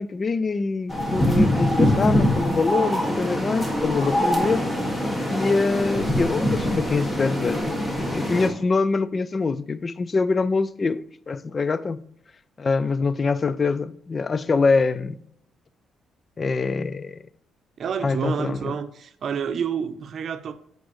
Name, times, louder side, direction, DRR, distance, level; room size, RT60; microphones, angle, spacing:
voice 1, 0.0-4.7 5.3-12.0 12.6-15.2 16.4-17.2 18.0-18.7, left 4 dB, 35° left, 0.4 m, -24 dB
sound 1, 0.9-8.5, equal, 20° left, 1.8 m, -23 dB
voice 2, 17.8-20.5, right 7 dB, 55° right, 0.7 m, -29 dB
8.2 x 5.2 x 3.1 m
cardioid pair, 90°, 0 cm